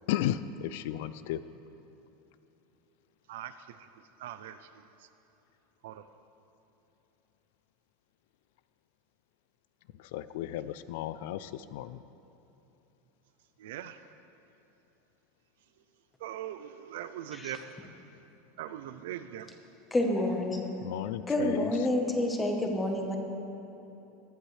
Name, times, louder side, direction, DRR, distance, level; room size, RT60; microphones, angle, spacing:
voice 1, 0.1-1.4 10.0-12.0 20.8-21.7, left 12 dB, 55° left, 14 dB, 0.3 m, -34 dB
voice 2, 3.3-3.9 4.2-4.6 5.8-6.0 13.6-14.0 16.2-17.6 18.6-19.5, right 11 dB, 70° right, 11 dB, 0.5 m, -40 dB
voice 3, 19.9-20.7 21.3-23.2, left 1 dB, 10° left, 2 dB, 1.0 m, -28 dB
19.5 x 12.0 x 3.3 m, 2.9 s
supercardioid pair, 175°, 0 cm